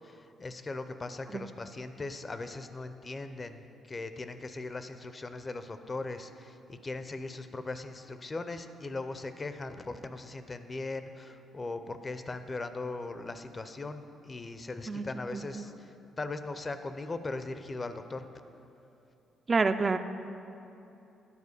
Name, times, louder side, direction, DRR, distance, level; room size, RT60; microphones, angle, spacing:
voice 1, 0.0-3.6 3.9-18.3, left 3 dB, 30° left, 10 dB, 0.5 m, -39 dB
voice 2, 19.5-20.0, right 4 dB, 30° right, 9 dB, 0.3 m, -26 dB
9.7 x 4.5 x 6.6 m, 2.8 s
cardioid pair, 90°, 0 cm